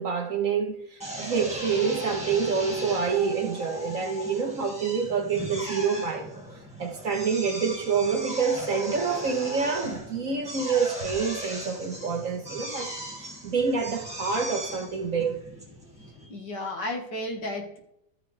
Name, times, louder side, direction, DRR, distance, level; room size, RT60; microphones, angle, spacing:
voice 1, 0.0-6.3 6.8-12.9 13.2-15.4, right 5 dB, 50° right, 1.2 m, -27 dB
Drill, 1.0-16.3, equal, 5° right, 2.2 m, -37 dB
voice 2, 16.2-17.8, left 1 dB, 65° left, 2.2 m, -33 dB
14.0 x 7.5 x 3.3 m
omnidirectional pair, 2.0 m